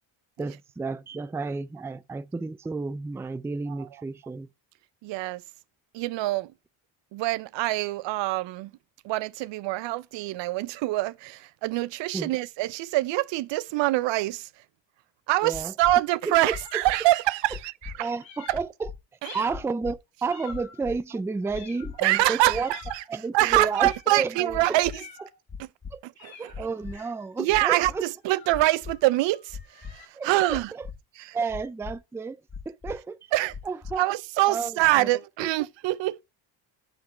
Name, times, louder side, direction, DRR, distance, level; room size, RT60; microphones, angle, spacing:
voice 1, 0.4-4.5 12.1-12.3 15.4-15.7 16.2-16.5 18.0-18.9 19.3-22.7 23.1-24.8 25.9-26.0 26.4-28.1 30.1-30.9 31.3-32.4 32.7-33.2 33.6-34.0 34.5-35.1 35.4-35.5, right 4 dB, 5° right, 0.4 m, -31 dB
voice 2, 5.0-5.4 5.9-6.5 7.1-8.7 9.0-14.5 15.3-18.1 19.2-19.4 22.0-23.0 23.3-24.9 26.0-26.5 27.4-29.6 29.9-30.7 31.2-31.4 33.3-33.5 34.0-36.2, right 17 dB, 70° right, 0.6 m, -25 dB
sound 1, 15.5-15.9 16.5-16.9 17.5-17.9 18.5-19.0 19.5-19.9 20.5-21.0 21.5-21.9 22.5-22.9 23.5-23.9 24.5-25.0 25.5-25.9 26.5-26.9 27.5-27.9 28.5-28.9 29.5-29.9 30.5-30.9 31.5-31.9 32.5-32.9 33.5-33.9, left 6 dB, 20° left, 1.7 m, -38 dB
sound 2, 16.4-17.6 18.2-18.7 19.2-19.7 20.3-20.9 21.5-22.1 22.6-23.1 23.7-24.2 24.9-25.4 26.2-30.1, left 6 dB, 75° left, 3.4 m, -48 dB
11.0 x 3.7 x 4.3 m
cardioid pair, 85°, 45 cm